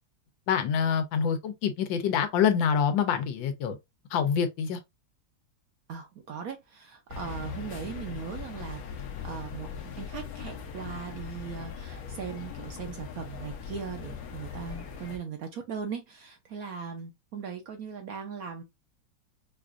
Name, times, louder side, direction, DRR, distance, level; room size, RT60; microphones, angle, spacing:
voice 1, 0.5-3.8 4.1-4.8, left 7 dB, 80° left, 1.5 m, -26 dB
voice 2, 5.9-18.6, right 6 dB, 65° right, 1.0 m, -39 dB
sound 1, 7.1-15.2, left 7 dB, 60° left, 1.1 m, -40 dB
4.9 x 2.5 x 2.4 m
omnidirectional pair, 2.0 m